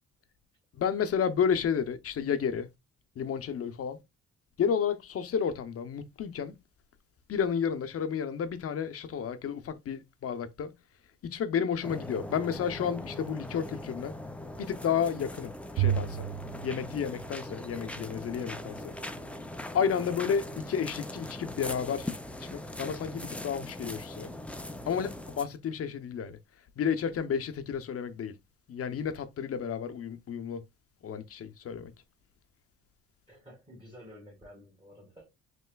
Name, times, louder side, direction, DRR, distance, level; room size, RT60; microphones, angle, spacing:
voice 1, 0.8-2.7 3.2-4.0 4.6-6.5 7.3-10.7 11.2-14.2 14.6-16.3 16.6-18.9 19.7-22.1 22.4-24.3 24.9-26.4 26.8-28.3 28.7-30.6 31.0-31.9, left 7 dB, 50° left, 0.7 m, -31 dB
sound 1, 11.8-25.5, left 1 dB, 5° left, 0.5 m, -41 dB
Bowed string instrument, 15.8-18.2, right 10 dB, 55° right, 0.4 m, -33 dB
voice 2, 33.3-35.3, equal, 15° right, 1.7 m, -51 dB
5.5 x 3.0 x 2.3 m
cardioid pair, 90°, 30 cm